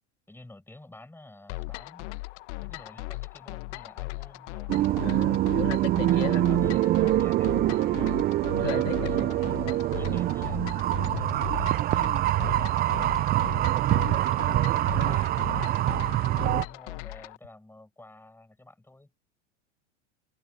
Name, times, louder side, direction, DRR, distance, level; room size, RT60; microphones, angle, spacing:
voice 1, 0.3-2.1 2.6-5.1 6.0-8.2 8.6-10.6 11.1-15.9 16.4-19.1, left 2 dB, 5° left, 7.2 m, -50 dB
sound 1, 1.5-17.4, left 22 dB, 65° left, 1.2 m, -38 dB
sound 2, 4.7-16.6, right 15 dB, 25° right, 0.4 m, -25 dB
voice 2, 5.0-6.5 8.5-9.3 11.1-11.4, left 12 dB, 85° left, 4.3 m, -35 dB
hypercardioid pair, 115°, 37 cm